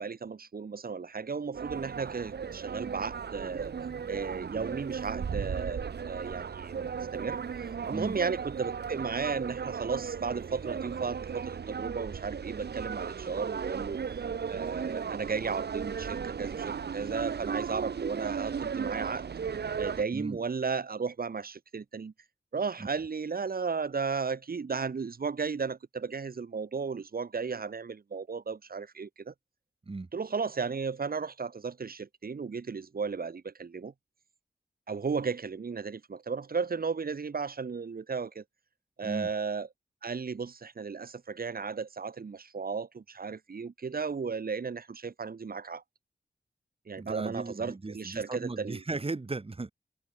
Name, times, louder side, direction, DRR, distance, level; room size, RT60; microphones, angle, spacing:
voice 1, 0.0-3.7 4.1-7.4 7.9-14.0 14.5-19.2 19.8-22.1 22.5-29.3 30.1-33.9 34.9-38.4 39.0-39.7 40.0-45.8 46.9-48.8, right 5 dB, 65° right, 5.3 m, -34 dB
sound 1, 1.5-20.0, right 6 dB, 85° right, 3.2 m, -36 dB
voice 2, 47.0-49.7, right 3 dB, 35° right, 3.8 m, -36 dB
wide cardioid pair, 80°, 17 cm